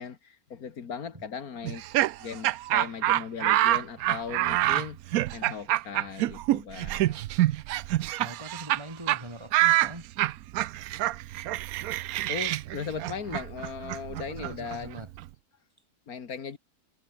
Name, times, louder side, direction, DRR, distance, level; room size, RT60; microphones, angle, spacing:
voice 1, 0.0-1.8 2.2-7.5 12.3-15.0 16.1-16.6, left 6 dB, 75° left, 2.1 m, -38 dB
Laughter, 1.6-8.8 9.1-9.2 9.5-15.2, right 15 dB, 75° right, 1.0 m, -26 dB
voice 2, 8.0-10.4 14.2-15.1, right 1 dB, 20° right, 3.1 m, -43 dB
omnidirectional pair, 1.6 m